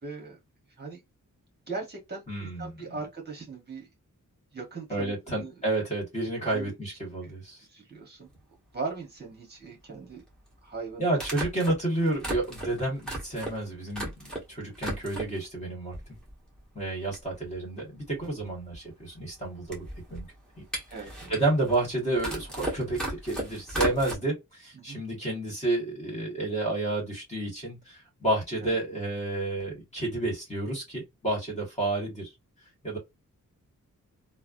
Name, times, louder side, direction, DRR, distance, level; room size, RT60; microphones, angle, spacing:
voice 1, 0.0-0.4 0.8-1.0 1.7-3.9 4.5-5.6 6.4-7.3 7.7-8.3 8.7-10.2 10.6-11.1 20.9-21.3 24.7-25.0 28.6-28.8, right 4 dB, 30° right, 1.2 m, -39 dB
voice 2, 2.3-2.7 4.9-7.6 11.0-16.0 16.7-19.8 20.1-20.3 20.6-20.7 21.3-32.3 32.8-33.0, right 2 dB, 20° left, 1.6 m, -30 dB
sound 1, 8.3-8.4 10.2-10.3 11.1-14.4 14.7-15.4 15.9-16.6 16.8-16.9 17.1-24.1, right 1 dB, ahead, 1.3 m, -36 dB
3.3 x 2.1 x 2.5 m
wide cardioid pair, 150°, 32 cm